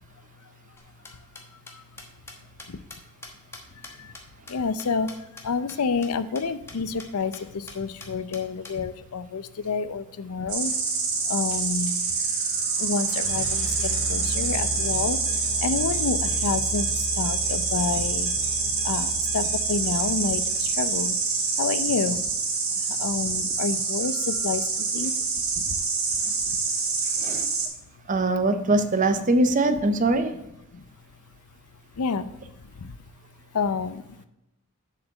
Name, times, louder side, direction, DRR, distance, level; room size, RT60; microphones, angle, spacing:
voice 1, 0.2-0.5 1.1-1.2 1.5-2.0 2.7-2.9 3.8-4.2 4.5-10.8 11.2-12.2 12.8-21.2 21.6-22.3 22.8-25.1 25.6-25.8 26.5-26.6 30.7-30.8 32.0-33.1 33.5-34.3, left 5 dB, 85° left, 13 dB, 0.6 m, -30 dB
sound 1, 0.8-5.4 5.7-5.8 6.0-6.1 6.3-6.4 6.7-7.1 7.3-7.4 7.7-8.7, left 3 dB, 10° left, 1.1 m, -43 dB
Insect, 10.5-27.7, right 4 dB, 70° right, 2.2 m, -26 dB
sound 2, 11.1-21.9, left 2 dB, 60° left, 1.0 m, -37 dB
voice 2, 27.2-27.5 28.1-30.3, right 2 dB, 35° right, 8 dB, 0.6 m, -22 dB
7.2 x 5.0 x 6.4 m, 0.86 s
head